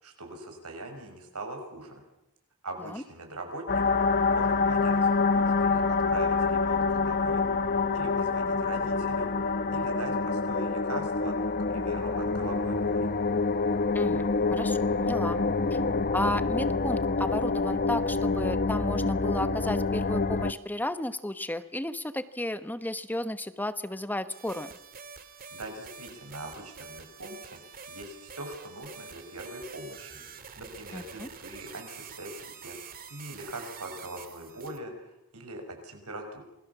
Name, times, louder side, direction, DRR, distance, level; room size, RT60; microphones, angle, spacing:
voice 1, 0.0-2.0 2.6-7.4 7.9-13.1 25.5-36.4, right 1 dB, 85° right, 4 dB, 6.2 m, -41 dB
sound 1, 3.7-20.5, left 4 dB, 45° left, 0.9 m, -26 dB
voice 2, 13.9-15.4 15.7-15.8 16.1-24.7 30.9-31.3, left 1 dB, 10° left, 11 dB, 1.0 m, -33 dB
sound 2, 24.3-34.8, right 6 dB, 40° right, 1.9 m, -46 dB
27.5 x 21.0 x 7.2 m, 0.87 s
head